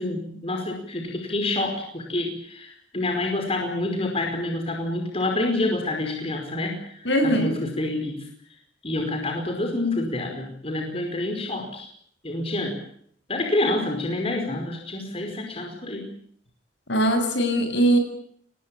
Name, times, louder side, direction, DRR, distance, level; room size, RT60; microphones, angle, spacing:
voice 1, 0.0-8.3 8.8-11.9 12.2-12.8 13.3-16.1, left 2 dB, 30° left, 2 dB, 5.2 m, -28 dB
voice 2, 7.0-7.5 16.9-18.0, right 1 dB, 65° left, 6 dB, 7.6 m, -21 dB
26.0 x 20.0 x 8.7 m, 0.66 s
head